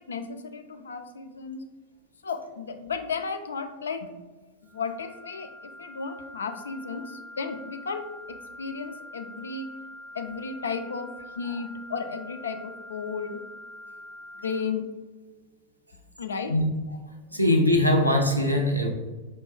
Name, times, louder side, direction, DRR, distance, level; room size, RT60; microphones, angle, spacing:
voice 1, 0.0-1.6 2.2-4.1 4.6-9.7 10.1-11.1 11.4-13.4 14.4-14.8 16.2-16.5, left 5 dB, 70° left, 7 dB, 0.3 m, -34 dB
sound 1, 4.7-14.6, left 1 dB, 5° right, 0.8 m, -45 dB
voice 2, 17.3-18.9, left 1 dB, 85° right, 3 dB, 0.5 m, -21 dB
4.6 x 2.2 x 3.0 m, 1.2 s
figure-of-eight pair, 90°, 0 cm